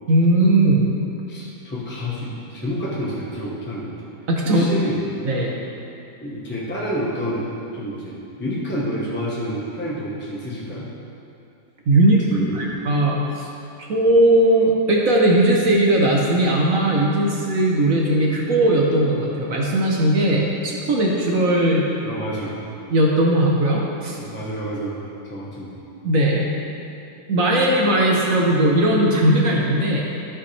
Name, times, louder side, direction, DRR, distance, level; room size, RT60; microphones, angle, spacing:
voice 1, 0.1-0.9 4.3-4.6 5.2-5.5 11.9-12.2 12.5-13.5 13.8-21.9 22.9-24.2 26.0-26.4 27.3-30.1, right 1 dB, 55° right, -2 dB, 1.1 m, -18 dB
voice 2, 1.3-3.9 4.4-5.0 6.2-10.9 12.3-12.7 22.0-22.6 24.1-25.0 25.3-25.7, equal, 10° left, -6 dB, 0.8 m, -29 dB
13.5 x 5.7 x 3.3 m, 2.7 s
omnidirectional pair, 2.1 m